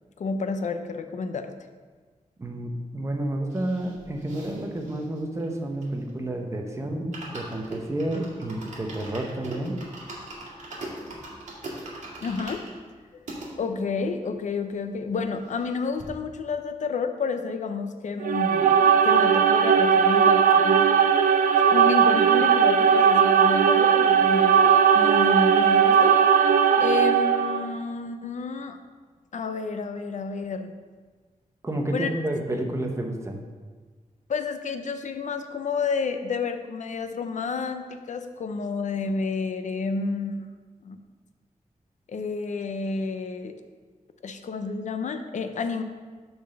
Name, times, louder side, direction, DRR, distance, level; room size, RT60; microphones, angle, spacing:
voice 1, 0.2-1.5 12.2-12.6 13.6-20.9 21.7-24.6 24.9-26.2 26.8-28.8 29.3-30.8 31.9-32.1 34.3-40.5 40.8-41.0 42.1-43.6 44.2-45.8, left 4 dB, 60° left, 8 dB, 0.6 m, -30 dB
voice 2, 2.4-9.8 31.6-33.4, right 1 dB, 20° right, 2 dB, 0.8 m, -30 dB
sound 1, 3.5-6.3 6.6-6.7 7.0-13.5 14.1-14.2 14.3-14.4 14.7-15.7 16.0-16.1, right 2 dB, 60° right, 2.0 m, -41 dB
sound 2, 18.2-27.7, right 7 dB, 85° right, 0.5 m, -18 dB
6.8 x 4.1 x 6.4 m, 1.5 s
wide cardioid pair, 145°, 14 cm